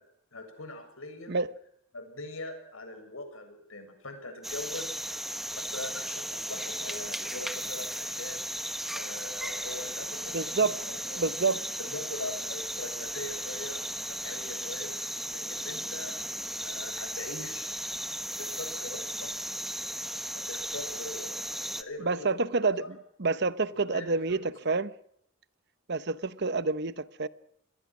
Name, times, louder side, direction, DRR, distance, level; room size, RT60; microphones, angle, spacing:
voice 1, 0.3-1.3 1.9-5.0 5.5-8.4 8.9-11.3 11.8-14.9 15.3-16.1 16.6-17.7 18.4-19.4 20.3-22.5 22.8-22.9 23.7-24.4, left 2 dB, 85° left, 7.2 m, -41 dB
sound 1, 4.4-21.8, equal, ahead, 1.2 m, -36 dB
voice 2, 10.3-10.8 11.2-11.6 22.0-22.8 23.2-24.9 25.9-27.3, right 3 dB, 55° right, 0.9 m, -28 dB
27.5 x 21.0 x 6.2 m
head